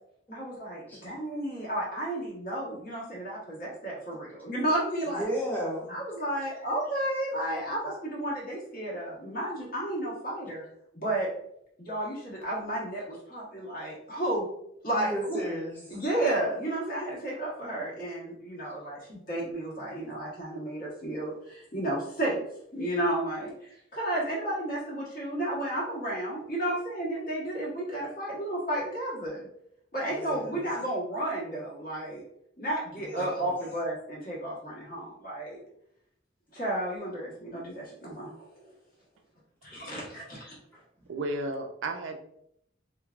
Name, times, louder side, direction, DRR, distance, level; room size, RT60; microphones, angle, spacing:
voice 1, 0.3-5.2 5.9-10.6 10.9-11.3 11.8-14.5 14.8-15.4 15.9-22.4 22.7-29.5 29.9-32.2 32.6-35.6 36.5-38.7 39.6-40.6, right 1 dB, 45° left, -5 dB, 1.3 m, -32 dB
voice 2, 5.0-5.9 14.9-16.0 30.2-30.5 32.9-33.5 39.7-40.1, equal, 10° left, -5 dB, 1.1 m, -34 dB
voice 3, 41.1-42.2, right 2 dB, 80° right, 4 dB, 0.5 m, -33 dB
3.4 x 3.1 x 2.4 m, 0.73 s
head